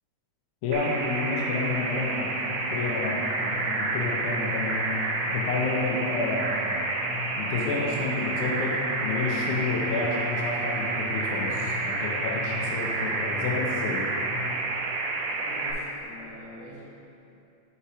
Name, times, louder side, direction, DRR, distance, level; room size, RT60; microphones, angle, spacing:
voice 1, 0.6-2.4 2.7-4.9 5.3-6.8 7.4-14.0, left 3 dB, 90° left, -2 dB, 2.2 m, -30 dB
sound 1, 0.7-15.7, right 3 dB, 75° right, 1.9 m, -29 dB
sound 2, 3.3-14.9, left 2 dB, 40° left, 1.3 m, -41 dB
voice 2, 15.2-16.8, left 1 dB, 60° left, -7 dB, 2.6 m, -44 dB
6.3 x 5.7 x 4.8 m, 2.8 s
omnidirectional pair, 3.4 m